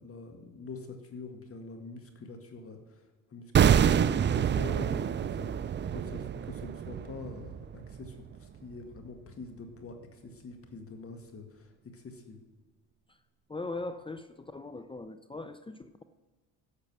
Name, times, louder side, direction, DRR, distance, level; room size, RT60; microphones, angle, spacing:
voice 1, 0.0-12.4, left 3 dB, 35° left, 5 dB, 1.8 m, -45 dB
sound 1, 3.5-8.6 8.8-9.0, right 8 dB, 30° right, 0.4 m, -27 dB
voice 2, 13.5-16.0, left 2 dB, 15° left, 11 dB, 0.6 m, -40 dB
11.0 x 6.7 x 6.2 m, 1.3 s
supercardioid pair, 75°, 37 cm